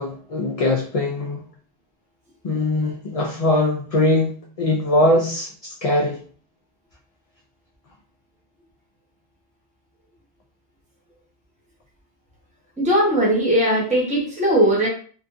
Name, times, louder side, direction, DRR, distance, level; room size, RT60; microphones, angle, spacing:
voice 1, 0.0-1.4 2.4-6.2, left 1 dB, 50° left, 0 dB, 0.4 m, -21 dB
voice 2, 12.8-14.9, right 1 dB, 10° right, -4 dB, 0.8 m, -19 dB
3.0 x 2.5 x 2.6 m, 0.43 s
omnidirectional pair, 1.1 m